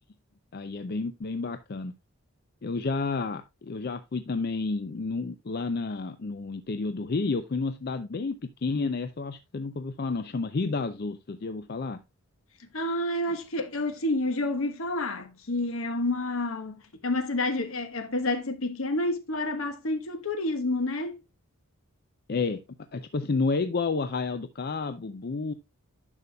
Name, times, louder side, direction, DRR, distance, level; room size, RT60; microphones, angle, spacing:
voice 1, 0.5-1.9 2.6-12.0 22.3-22.6 22.9-25.5, left 4 dB, 45° left, 0.5 m, -30 dB
voice 2, 12.6-16.8 17.0-21.2, left 2 dB, 65° left, 1.2 m, -29 dB
10.5 x 6.7 x 2.2 m
head